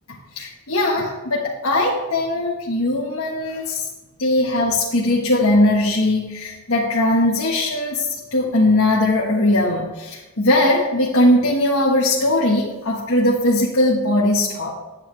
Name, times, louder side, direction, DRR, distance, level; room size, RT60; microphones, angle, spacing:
voice 1, 0.3-3.8 4.2-14.7, left 1 dB, 65° left, -5 dB, 1.4 m, -19 dB
9.2 x 8.9 x 3.3 m, 1.1 s
head